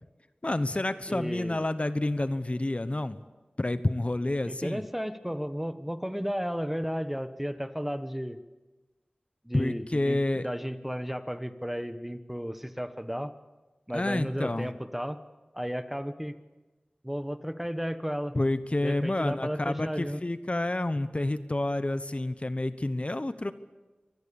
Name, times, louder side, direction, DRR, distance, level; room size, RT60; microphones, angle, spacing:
voice 1, 0.4-3.2 3.6-4.8 9.5-10.5 13.9-14.7 18.3-23.5, left 1 dB, 40° left, 12 dB, 1.0 m, -29 dB
voice 2, 1.1-1.6 4.4-8.4 9.4-13.3 13.9-15.2 15.5-16.3 17.0-18.4 18.8-20.2, equal, 5° right, 11 dB, 1.2 m, -33 dB
25.0 x 20.5 x 7.1 m, 1.2 s
wide cardioid pair, 45°, 3 cm